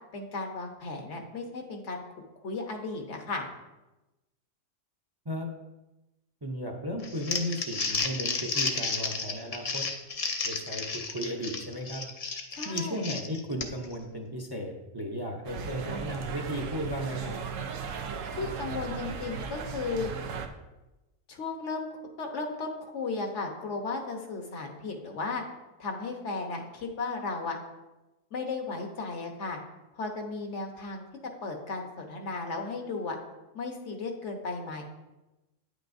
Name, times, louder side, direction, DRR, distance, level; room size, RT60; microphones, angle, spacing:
voice 1, 0.1-2.0 2.4-3.5 12.5-13.1 18.4-20.1 21.3-21.9 22.2-25.4 25.8-27.6 28.3-29.6 29.9-31.0 31.4-33.2 33.5-34.8, left 3 dB, 65° left, 3 dB, 1.4 m, -35 dB
voice 2, 6.4-9.9 10.4-12.1 12.6-17.4, equal, 25° right, 2 dB, 0.7 m, -35 dB
Crumpling crinkling, 7.0-13.9, left 4 dB, 40° left, 0.5 m, -32 dB
sound 1, 15.5-20.5, right 6 dB, 80° right, 1.1 m, -36 dB
9.5 x 8.1 x 2.6 m, 1.0 s
omnidirectional pair, 1.3 m